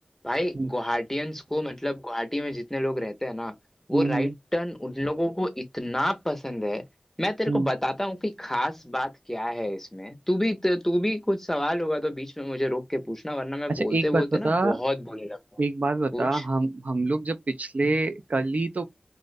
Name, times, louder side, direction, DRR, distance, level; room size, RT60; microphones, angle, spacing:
voice 1, 0.2-3.5 3.9-6.8 7.2-15.4 16.1-16.5, left 1 dB, 15° left, 0.6 m, -28 dB
voice 2, 3.9-4.3 7.5-7.7 13.7-14.8 15.6-18.8, right 2 dB, 65° right, 0.4 m, -26 dB
2.4 x 2.1 x 2.4 m
wide cardioid pair, 45°, 3 cm